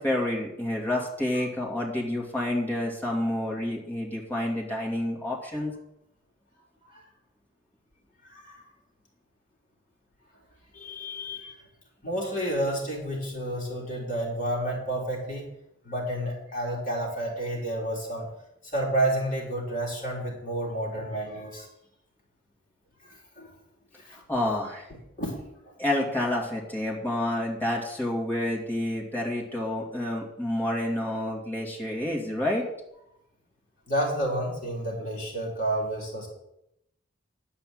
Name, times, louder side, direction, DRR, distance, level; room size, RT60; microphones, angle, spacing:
voice 1, 0.0-5.7 24.1-24.9 25.8-32.7, left 1 dB, 10° left, -2 dB, 2.3 m, -29 dB
voice 2, 8.2-8.7 10.7-11.6 12.0-15.5 15.8-18.3 18.7-21.7 23.0-23.5 24.0-24.2 25.2-25.4 25.6-25.7 33.9-36.3, right 1 dB, 40° left, -2 dB, 3.4 m, -30 dB
10.5 x 5.7 x 7.8 m, 0.82 s
head